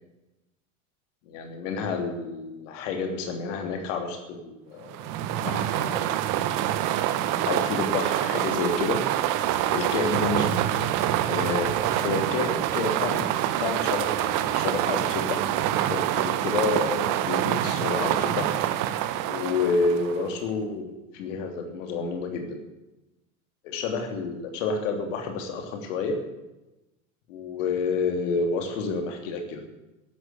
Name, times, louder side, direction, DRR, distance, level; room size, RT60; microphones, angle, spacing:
voice 1, 1.3-5.1 5.4-6.3 7.5-9.0 9.7-10.8 11.3-18.5 19.3-22.6 23.6-26.2 27.3-29.6, left 4 dB, 65° left, 5 dB, 3.2 m, -29 dB
sound 1, 4.9-20.3, right 12 dB, 50° right, 1.2 m, -26 dB
13.5 x 11.5 x 8.4 m, 1.0 s
hypercardioid pair, 80°, 41 cm